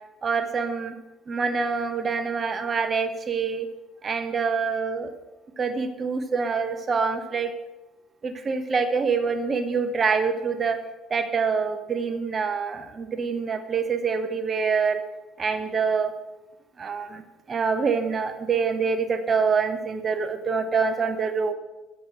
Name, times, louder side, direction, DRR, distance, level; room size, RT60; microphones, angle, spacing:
voice 1, 0.2-0.9 1.3-3.7 4.0-5.1 5.6-7.5 8.2-10.8 11.1-15.0 15.4-16.1 16.8-21.5, right 5 dB, 35° right, 9 dB, 1.0 m, -25 dB
8.0 x 6.3 x 5.9 m, 1.0 s
figure-of-eight pair, 50°, 0 cm